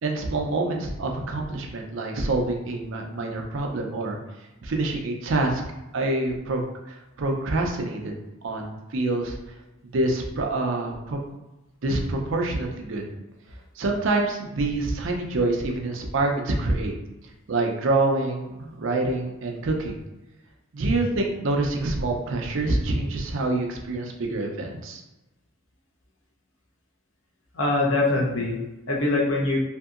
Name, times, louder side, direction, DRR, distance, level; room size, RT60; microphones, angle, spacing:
voice 1, 0.0-4.2 4.6-5.6 5.9-6.6 6.9-8.2 8.4-9.4 9.9-11.2 11.8-13.1 13.8-16.9 17.5-20.0 20.7-25.0, right 2 dB, 70° right, 1 dB, 0.5 m, -26 dB
voice 2, 27.5-29.6, left 2 dB, 70° left, -1 dB, 0.7 m, -23 dB
2.7 x 2.6 x 2.4 m, 1.0 s
head